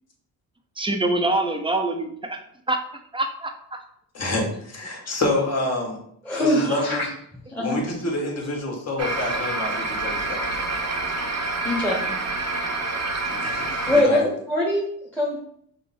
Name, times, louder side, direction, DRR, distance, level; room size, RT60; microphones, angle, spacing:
voice 1, 0.8-2.4 2.7-2.8 3.1-3.8 6.7-6.8 10.9-11.0, right 2 dB, 15° right, 5 dB, 0.7 m, -25 dB
voice 2, 4.1-6.0 6.4-7.1 7.6-10.9 13.3-14.2, left 2 dB, 40° left, 0 dB, 1.5 m, -28 dB
voice 3, 6.2-7.1 7.5-7.8 11.6-12.2 13.9-14.9 15.1-15.4, left 1 dB, 5° left, -6 dB, 1.2 m, -22 dB
sound 1, 9.0-14.0, right 2 dB, 40° right, 0.9 m, -27 dB
5.5 x 2.1 x 4.2 m, 0.68 s
cardioid pair, 80°, 39 cm